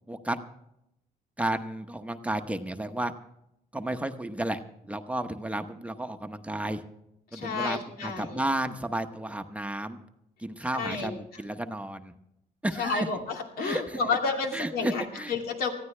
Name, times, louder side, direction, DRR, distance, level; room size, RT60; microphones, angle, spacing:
voice 1, 0.1-0.4 1.4-3.1 3.7-6.8 7.3-10.0 10.4-12.1 12.6-13.1 13.6-14.0 14.5-15.3, right 1 dB, 10° right, 7 dB, 0.9 m, -32 dB
voice 2, 7.3-8.4 10.7-11.2 12.8-15.7, left 4 dB, 75° left, 2 dB, 2.6 m, -31 dB
19.5 x 15.0 x 3.3 m, 0.80 s
cardioid pair, 110°, 16 cm